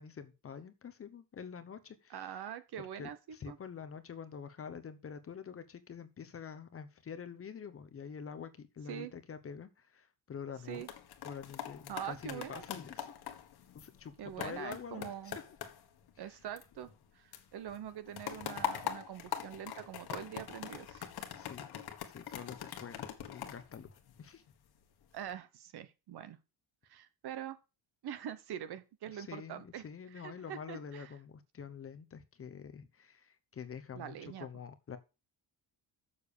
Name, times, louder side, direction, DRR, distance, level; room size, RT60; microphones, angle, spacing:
voice 1, 0.0-2.3 3.0-10.8 11.2-13.1 13.7-15.3 16.2-16.4 21.4-21.7 22.0-24.4 29.1-35.0, left 6 dB, 30° left, 10 dB, 0.8 m, -47 dB
voice 2, 2.1-3.6 8.9-9.1 10.7-10.9 11.9-12.6 14.2-15.4 16.2-21.1 25.1-26.4 26.9-27.6 28.0-29.8 30.1-31.1 33.9-34.5, right 10 dB, 55° right, 13 dB, 1.1 m, -44 dB
sound 1, 10.6-17.1 17.3-24.5 25.0-25.3, left 9 dB, 50° left, 1.4 m, -43 dB
7.0 x 6.8 x 6.8 m, 0.29 s
cardioid pair, 165°, 47 cm